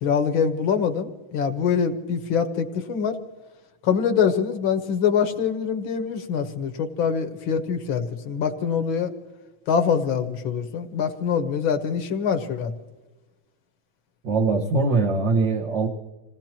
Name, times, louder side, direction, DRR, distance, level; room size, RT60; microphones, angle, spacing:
voice 1, 0.0-3.2 3.8-9.1 9.7-12.7, left 7 dB, 70° left, 7 dB, 2.0 m, -24 dB
voice 2, 14.2-15.9, right 3 dB, 60° right, -4 dB, 2.1 m, -22 dB
27.5 x 17.5 x 3.0 m, 1.2 s
omnidirectional pair, 2.3 m